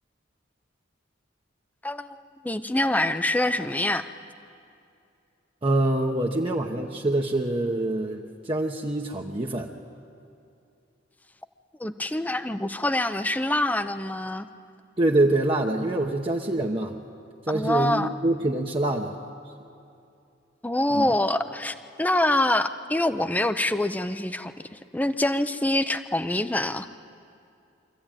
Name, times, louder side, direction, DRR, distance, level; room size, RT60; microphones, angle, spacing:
voice 1, 1.8-4.1 11.8-14.5 17.5-18.1 20.6-26.9, left 1 dB, 10° left, 11 dB, 0.6 m, -25 dB
voice 2, 5.6-9.7 15.0-16.9 17.5-19.2 20.9-21.1, right 2 dB, 30° right, 0 dB, 0.9 m, -25 dB
24.5 x 15.0 x 9.0 m, 2.6 s
head